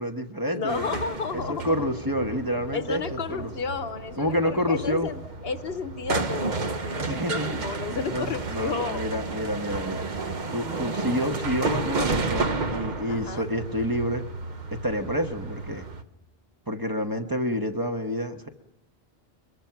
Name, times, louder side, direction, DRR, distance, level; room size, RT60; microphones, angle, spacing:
voice 1, 0.0-0.9 1.3-3.5 4.2-5.1 7.1-7.6 8.1-10.0 10.5-14.2 14.8-15.9 16.7-18.5, equal, 20° right, 4 dB, 1.2 m, -28 dB
voice 2, 0.5-1.7 2.7-9.1 13.1-13.4, left 5 dB, 65° left, 11 dB, 1.2 m, -32 dB
sound 1, 0.7-16.0, right 3 dB, 45° right, 1.1 m, -32 dB
23.5 x 21.5 x 5.9 m, 0.89 s
omnidirectional pair, 1.1 m